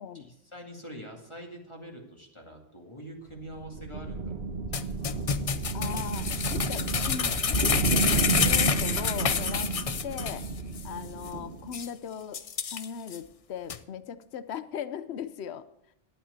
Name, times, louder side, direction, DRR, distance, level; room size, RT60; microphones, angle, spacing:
voice 1, 0.1-4.4 4.7-5.1 5.3-5.5 5.9-6.1 6.9-7.0 7.3-7.8, equal, 25° left, 1 dB, 2.3 m, -45 dB
sound 1, 3.3-11.8, right 4 dB, 60° right, 1.3 m, -32 dB
sound 2, 4.7-10.5 10.8-10.9 11.3-11.4 11.7-11.9 12.3-13.2 13.7-13.8, left 6 dB, 40° left, 0.6 m, -28 dB
voice 2, 5.7-9.8 10.0-10.4 10.8-12.4 12.7-15.7, left 8 dB, 75° left, 14 dB, 1.0 m, -38 dB
12.0 x 8.9 x 8.1 m, 0.78 s
omnidirectional pair, 1.1 m